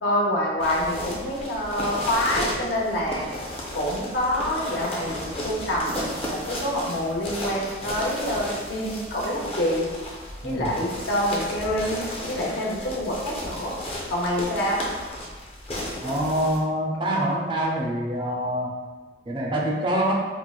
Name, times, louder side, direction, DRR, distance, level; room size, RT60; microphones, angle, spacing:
voice 1, 0.0-3.3 3.7-9.9 10.4-12.0 12.3-13.7 14.1-14.8, left 1 dB, 70° left, -3 dB, 0.7 m, -26 dB
sound 1, 0.6-16.6, left 1 dB, 30° left, 0.5 m, -34 dB
voice 2, 10.4-10.7 16.0-18.7 19.3-20.2, right 1 dB, 25° right, -1 dB, 0.4 m, -25 dB
4.4 x 2.0 x 2.3 m, 1.3 s
head